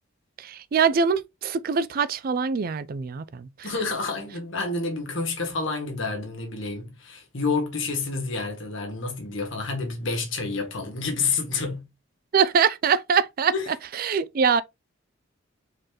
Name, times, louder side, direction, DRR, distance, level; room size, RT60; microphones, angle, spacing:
voice 1, 0.4-3.5 12.3-14.6, right 6 dB, 45° right, 0.4 m, -23 dB
voice 2, 3.6-11.9 13.5-13.7, left 4 dB, 75° left, 1.8 m, -29 dB
4.4 x 4.0 x 3.0 m
head